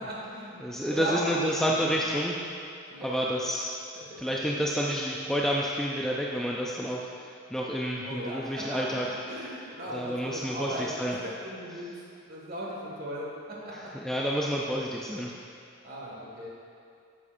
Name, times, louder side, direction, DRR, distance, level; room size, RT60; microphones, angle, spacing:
voice 1, 0.0-0.6 0.9-1.8 2.9-3.2 3.9-4.4 8.0-8.8 9.2-11.9 12.3-13.7 14.7-14.8 15.8-16.5, right 1 dB, 45° right, -5 dB, 1.9 m, -37 dB
voice 2, 0.6-2.4 3.0-3.7 4.2-9.1 9.9-11.2 13.9-15.4, equal, ahead, -3 dB, 0.4 m, -29 dB
11.5 x 8.5 x 2.6 m, 2.4 s
head